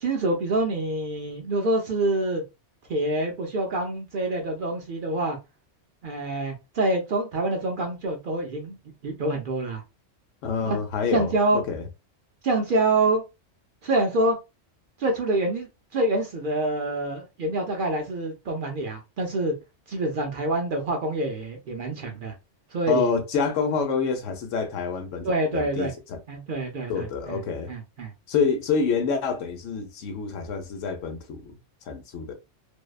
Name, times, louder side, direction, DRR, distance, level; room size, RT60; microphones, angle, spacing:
voice 1, 0.0-2.4 2.9-5.4 6.0-8.8 9.0-9.8 10.6-10.8 11.1-11.6 12.4-13.2 13.8-14.4 15.0-19.5 19.9-22.3 22.7-23.1 25.2-25.9 26.3-27.4 27.7-28.1, right 2 dB, 60° right, 0.6 m, -26 dB
voice 2, 10.4-11.8 22.9-26.2 26.9-27.7 28.3-31.6 31.9-32.3, left 5 dB, 90° left, 1.0 m, -27 dB
2.6 x 2.1 x 2.3 m
omnidirectional pair, 1.3 m